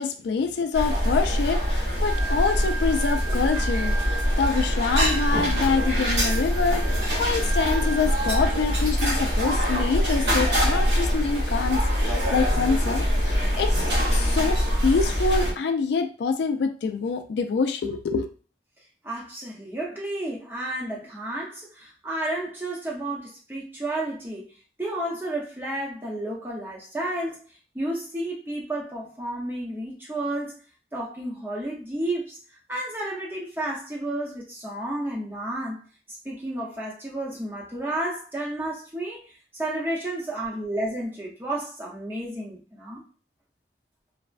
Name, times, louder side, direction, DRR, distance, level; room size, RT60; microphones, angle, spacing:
voice 1, 0.0-13.8 14.1-18.3, left 5 dB, 75° left, 7 dB, 0.3 m, -26 dB
sound 1, 0.7-15.5, equal, 80° right, 1.2 m, -24 dB
Organ, 2.0-8.5, right 4 dB, 60° right, 0.6 m, -36 dB
voice 2, 19.0-24.5 24.8-27.4 27.7-30.5 30.9-32.4 32.7-35.8 36.2-43.0, right 1 dB, 10° right, -3 dB, 0.6 m, -31 dB
3.2 x 2.1 x 2.4 m, 0.38 s
head